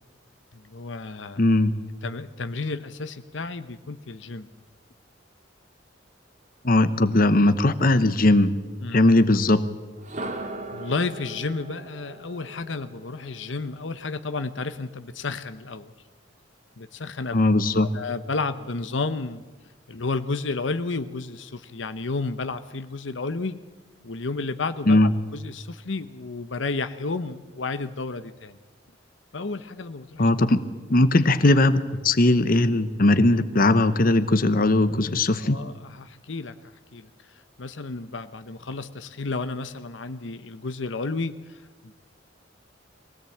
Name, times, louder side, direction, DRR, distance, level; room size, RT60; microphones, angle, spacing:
voice 1, 0.5-1.4 2.0-4.5 8.8-9.1 10.7-15.9 16.8-17.5 17.8-19.4 19.9-23.6 24.0-28.6 29.3-30.3 35.4-36.5 36.9-37.1 37.6-41.9, left 3 dB, 80° left, 11 dB, 1.0 m, -32 dB
voice 2, 1.4-1.8 6.6-8.5 8.9-9.6 17.3-17.9 24.9-25.1 30.2-30.6 30.9-35.6, left 2 dB, 50° left, 11 dB, 1.0 m, -19 dB
sound 1, 10.0-13.9, right 2 dB, 40° right, 2.1 m, -38 dB
22.5 x 17.5 x 8.7 m, 1.2 s
head